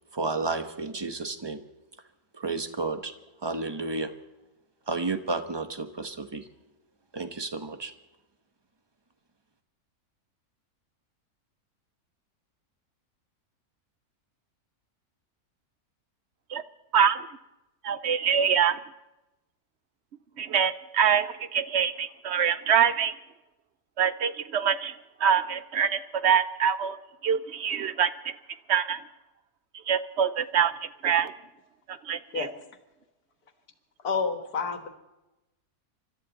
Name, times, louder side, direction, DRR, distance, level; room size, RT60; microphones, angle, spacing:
voice 1, 0.1-1.6 2.3-3.1 3.4-4.1 4.9-6.5 7.1-7.9, right 3 dB, 20° right, 8 dB, 0.9 m, -31 dB
voice 2, 16.9-17.3 17.8-18.8 20.4-23.1 24.0-24.9 25.2-28.3 28.7-29.0 29.9-30.7 31.0-31.3 31.9-32.5, right 7 dB, 60° right, 13 dB, 0.8 m, -25 dB
voice 3, 34.0-34.9, left 5 dB, 75° left, 7 dB, 1.9 m, -29 dB
25.5 x 13.0 x 4.0 m, 0.99 s
omnidirectional pair, 1.6 m